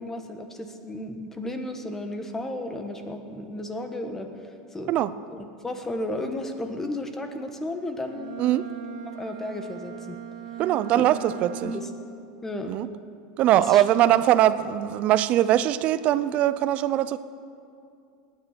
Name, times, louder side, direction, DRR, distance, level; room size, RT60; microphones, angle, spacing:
voice 1, 0.0-5.0 5.3-8.4 9.1-10.2 10.9-11.1 11.6-11.9 12.4-12.7 13.5-13.8, left 1 dB, 10° left, 6 dB, 1.4 m, -34 dB
Bowed string instrument, 8.0-12.2, right 9 dB, 80° right, 1.5 m, -39 dB
voice 2, 10.6-11.7 12.7-12.9 13.4-17.2, right 12 dB, 45° right, 15 dB, 0.6 m, -21 dB
19.0 x 9.6 x 5.9 m, 2.5 s
supercardioid pair, 125°, 3 cm